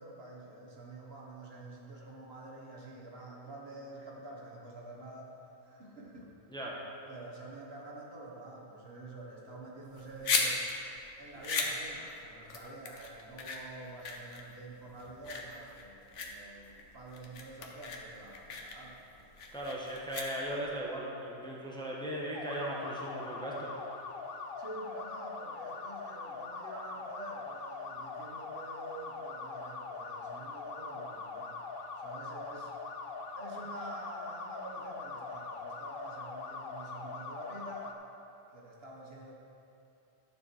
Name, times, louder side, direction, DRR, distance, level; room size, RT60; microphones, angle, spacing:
voice 1, 0.0-5.4 5.6-6.4 7.1-10.6 11.2-19.3 24.6-31.6 32.0-32.7 33.3-37.9 38.5-39.3, right 2 dB, 60° right, -2 dB, 1.4 m, -47 dB
sound 1, 9.8-20.8, left 4 dB, 90° left, 1.3 m, -37 dB
voice 2, 19.5-23.7, right 1 dB, 5° left, -4 dB, 1.2 m, -37 dB
sound 2, 22.3-37.9, left 4 dB, 55° left, 0.8 m, -42 dB
11.5 x 7.1 x 4.5 m, 2.8 s
omnidirectional pair, 1.2 m